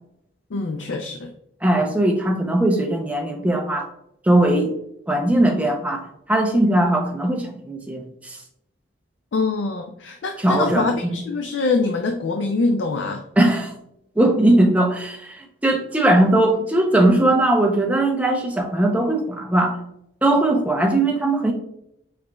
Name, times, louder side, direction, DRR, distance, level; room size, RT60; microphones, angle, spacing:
voice 1, 0.5-1.3 9.3-13.2, left 3 dB, 80° left, 5 dB, 0.4 m, -24 dB
voice 2, 1.6-3.9 4.2-4.7 5.1-8.4 10.4-11.2 13.4-13.7 14.2-19.8 20.2-21.5, right 1 dB, 10° right, 2 dB, 0.5 m, -19 dB
4.8 x 4.2 x 2.2 m, 0.77 s
head